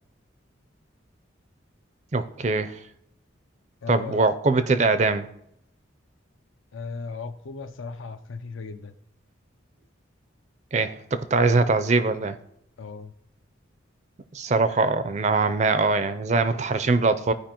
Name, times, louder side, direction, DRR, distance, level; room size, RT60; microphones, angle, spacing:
voice 1, 2.1-2.8 3.9-5.3 10.7-12.4 14.3-17.3, right 3 dB, 35° right, 11 dB, 0.4 m, -22 dB
voice 2, 3.8-4.3 6.7-8.9 12.8-13.1, left 4 dB, 80° left, 10 dB, 0.6 m, -36 dB
14.5 x 5.0 x 2.9 m, 0.78 s
head